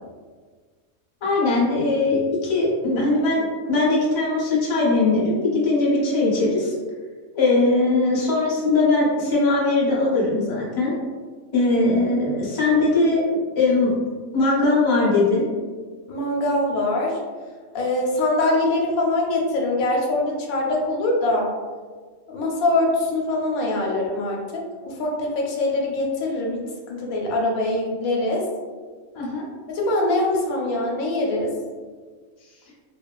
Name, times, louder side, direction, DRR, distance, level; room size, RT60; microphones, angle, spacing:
voice 1, 1.2-6.7 7.3-10.9 11.5-13.9 14.3-15.5 29.1-29.5, left 2 dB, 35° left, -6 dB, 0.5 m, -20 dB
voice 2, 16.1-17.2 17.7-21.5 22.3-28.4 29.7-31.5, left 2 dB, 85° left, -1 dB, 1.0 m, -23 dB
2.5 x 2.3 x 2.2 m, 1.5 s
omnidirectional pair, 1.5 m